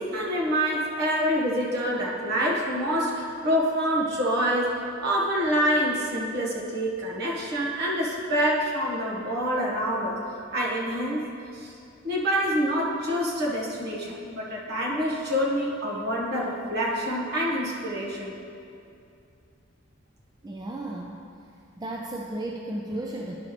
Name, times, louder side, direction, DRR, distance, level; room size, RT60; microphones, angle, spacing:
voice 1, 0.0-4.7 5.0-10.2 10.5-11.3 11.5-11.7 12.0-18.3, equal, 55° right, -4 dB, 1.4 m, -26 dB
voice 2, 20.4-21.2 21.8-23.3, right 1 dB, 20° right, -1 dB, 0.4 m, -34 dB
11.0 x 5.5 x 3.3 m, 2.5 s
head